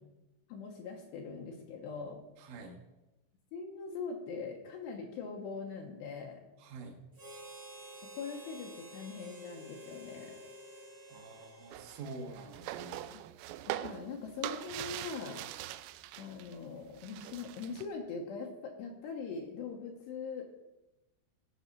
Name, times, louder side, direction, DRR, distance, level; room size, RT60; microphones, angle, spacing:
voice 1, 0.5-2.2 3.5-6.4 8.1-10.4 13.1-13.2 13.7-15.4 16.2-20.5, left 5 dB, 75° left, 1 dB, 2.8 m, -42 dB
voice 2, 2.4-2.8 6.6-7.0 11.1-13.0, right 3 dB, 70° right, 2 dB, 3.7 m, -46 dB
Harmonica, 7.1-12.6, right 1 dB, 30° right, 1.5 m, -51 dB
sound 1, 11.7-16.6 16.8-17.9, right 14 dB, 90° right, 3.1 m, -43 dB
16.5 x 6.2 x 5.4 m, 1.0 s
omnidirectional pair, 5.6 m